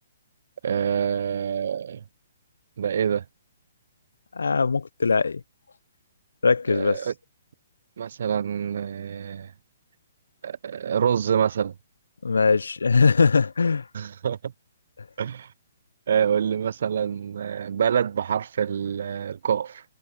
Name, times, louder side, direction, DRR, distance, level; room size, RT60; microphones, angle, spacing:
voice 1, 0.6-2.0 2.8-3.2 6.7-7.1 8.0-9.5 10.4-11.7 13.9-14.5 15.2-15.5 16.1-19.8, right 8 dB, 60° right, 0.3 m, -26 dB
voice 2, 4.4-5.4 6.4-7.0 12.2-13.8, left 4 dB, 75° left, 0.6 m, -21 dB
figure-of-eight pair, 130°, 0 cm